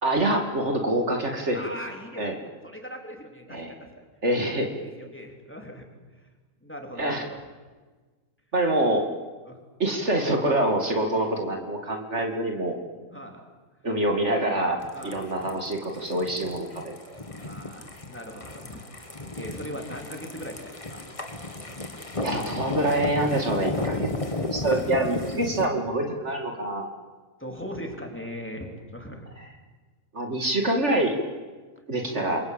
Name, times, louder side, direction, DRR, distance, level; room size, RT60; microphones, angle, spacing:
voice 1, 0.0-1.6 2.2-2.3 3.5-3.7 4.2-4.7 7.0-7.2 8.5-9.1 9.8-12.8 13.8-16.8 17.1-17.2 22.2-26.9 30.1-31.1 31.9-32.4, right 1 dB, 55° right, 3 dB, 2.7 m, -26 dB
voice 2, 1.5-2.3 2.6-4.0 4.4-5.9 6.6-7.4 9.4-9.6 13.1-13.4 14.9-15.2 17.4-21.1 27.4-29.3 32.0-32.4, equal, 10° left, 2 dB, 3.7 m, -40 dB
sound 1, 14.8-25.7, left 2 dB, 25° left, 1.8 m, -34 dB
28.0 x 23.5 x 8.8 m, 1.4 s
omnidirectional pair, 1.4 m